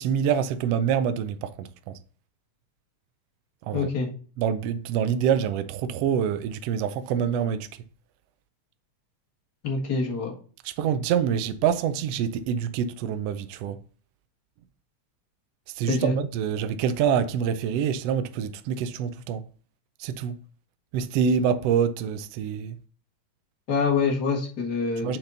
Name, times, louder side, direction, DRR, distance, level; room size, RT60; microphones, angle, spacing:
voice 1, 0.0-1.7 3.7-3.9 4.4-7.7 10.6-13.8 15.8-19.4 20.0-20.4 20.9-22.8 25.0-25.2, right 8 dB, 80° right, 1.4 m, -26 dB
voice 2, 3.7-4.1 9.6-10.3 15.9-16.1 23.7-25.2, left 4 dB, 40° left, 1.7 m, -25 dB
6.7 x 4.4 x 3.8 m
omnidirectional pair, 3.4 m